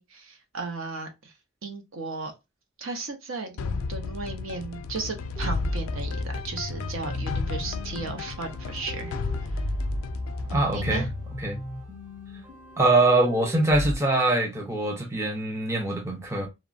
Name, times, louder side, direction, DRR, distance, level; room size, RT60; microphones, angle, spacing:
voice 1, 0.0-1.3 1.6-2.3 2.8-9.2 9.5-9.6 10.7-11.1, right 3 dB, 70° right, 0.7 m, -35 dB
sound 1, 3.6-12.4, left 4 dB, 75° left, 0.3 m, -34 dB
sound 2, 5.4-13.9, equal, 35° right, 0.9 m, -35 dB
voice 2, 10.5-11.0 11.4-11.6 12.8-16.5, right 2 dB, 15° right, 0.4 m, -23 dB
2.9 x 2.1 x 2.4 m
head